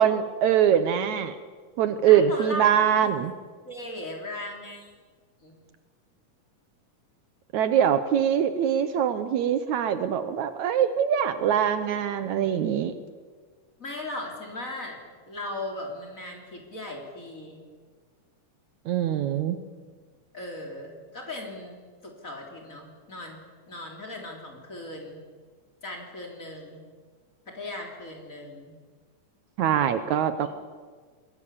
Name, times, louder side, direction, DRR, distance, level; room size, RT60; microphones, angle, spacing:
voice 1, 0.0-1.4 1.8-3.3 7.5-12.9 18.9-19.6 29.6-30.5, right 9 dB, 70° right, 11 dB, 2.2 m, -23 dB
voice 2, 2.1-2.7 3.0-3.1 3.6-4.9 5.4-5.6 13.8-17.6 20.3-21.8 22.0-23.4 23.7-25.2 25.8-26.8 27.5-28.7 30.4-30.5, left 1 dB, 25° left, 0 dB, 3.8 m, -38 dB
26.0 x 20.5 x 7.2 m, 1.5 s
omnidirectional pair, 3.6 m